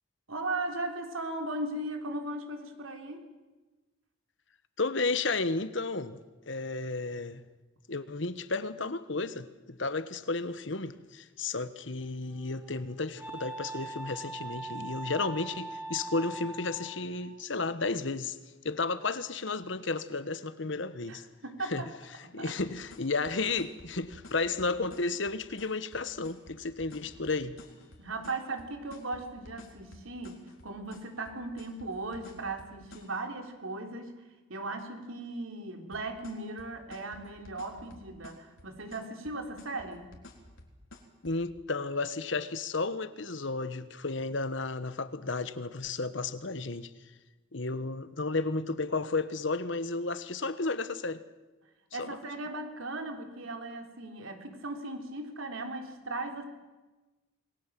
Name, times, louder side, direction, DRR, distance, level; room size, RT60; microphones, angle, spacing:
voice 1, 0.3-3.3 21.1-21.9 22.2-22.5 28.0-34.2 34.5-40.1 51.9-56.4, right 2 dB, 90° right, 3.8 m, -37 dB
voice 2, 4.8-6.2 6.5-7.4 7.9-18.4 18.6-21.2 21.7-21.8 22.3-27.6 41.2-46.9 47.5-51.2 52.0-52.2, left 3 dB, 65° left, 1.3 m, -33 dB
Wind instrument woodwind instrument, 11.8-17.3, right 2 dB, 10° right, 5.0 m, -42 dB
sound 1, 22.6-33.2 35.9-41.4, left 2 dB, 85° left, 3.8 m, -52 dB
27.5 x 21.0 x 7.6 m
head